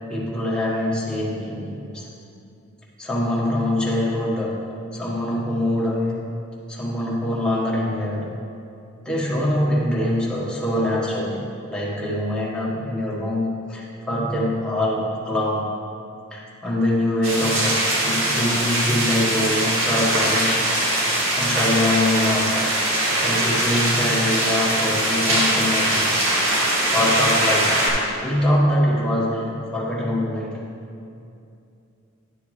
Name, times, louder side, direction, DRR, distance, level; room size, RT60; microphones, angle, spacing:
voice 1, 0.1-2.1 3.0-4.6 4.9-6.2 6.7-8.4 9.0-15.7 16.3-20.6 21.4-22.6 23.2-26.2 26.9-27.8 28.2-30.6, left 1 dB, 5° left, -6 dB, 1.4 m, -24 dB
sound 1, 17.2-27.9, right 1 dB, 85° right, 1.9 m, -21 dB
11.0 x 7.1 x 3.2 m, 2.6 s
head